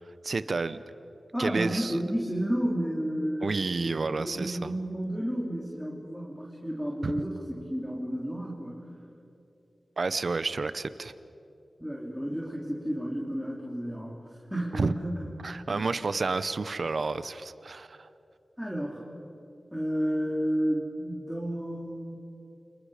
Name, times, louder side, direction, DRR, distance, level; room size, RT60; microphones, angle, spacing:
voice 1, 0.2-0.8 1.4-2.0 3.4-4.7 7.0-7.2 10.0-11.1 14.7-14.9 15.4-18.1, right 3 dB, 60° right, 13 dB, 0.9 m, -30 dB
voice 2, 1.3-3.6 3.8-8.8 11.8-15.3 15.7-15.9 18.6-19.0 19.7-22.2, equal, ahead, -3 dB, 3.4 m, -32 dB
30.0 x 27.0 x 5.1 m, 2.7 s
wide cardioid pair, 65°, 0 cm